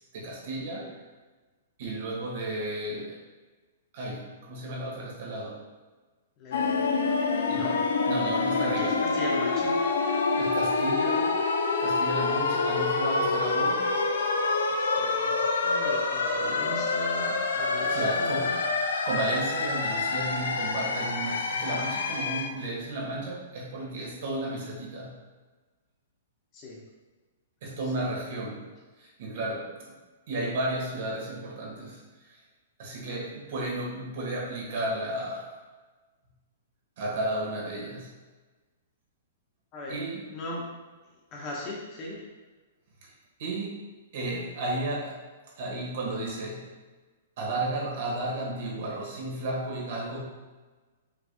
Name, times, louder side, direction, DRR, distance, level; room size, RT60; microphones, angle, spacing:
voice 1, 0.1-0.9 1.8-3.2 3.9-5.6 7.5-7.8 8.0-9.0 10.3-11.3 11.8-13.9 17.9-18.6 19.0-25.1 27.6-28.6 29.0-29.9 30.3-32.4 32.8-35.6 37.0-38.1 39.9-40.3 43.4-43.8 44.1-45.2 45.6-46.7 47.4-50.2, right 1 dB, 55° right, -3 dB, 1.4 m, -33 dB
voice 2, 6.4-6.7 7.5-7.7 8.5-9.7 14.8-18.5 26.5-26.8 28.0-28.1 39.7-39.9 40.3-40.6 41.3-42.2, left 2 dB, 30° left, -3 dB, 1.1 m, -38 dB
sound 1, 6.5-22.5, left 3 dB, 85° left, 0.5 m, -27 dB
5.8 x 3.5 x 2.3 m, 1.3 s
hypercardioid pair, 150°, 0 cm